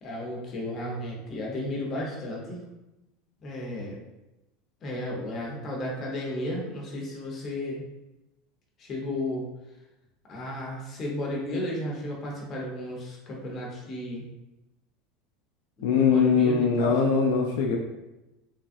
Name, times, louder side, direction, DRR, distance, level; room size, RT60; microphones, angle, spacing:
voice 1, 0.0-2.6 3.4-4.0 4.8-7.8 8.8-9.5 10.3-14.2 15.8-16.9, left 1 dB, 30° left, -2 dB, 0.8 m, -33 dB
voice 2, 15.8-17.8, left 5 dB, 80° left, 1 dB, 0.3 m, -22 dB
3.2 x 2.3 x 2.6 m, 0.98 s
supercardioid pair, 145°, 0 cm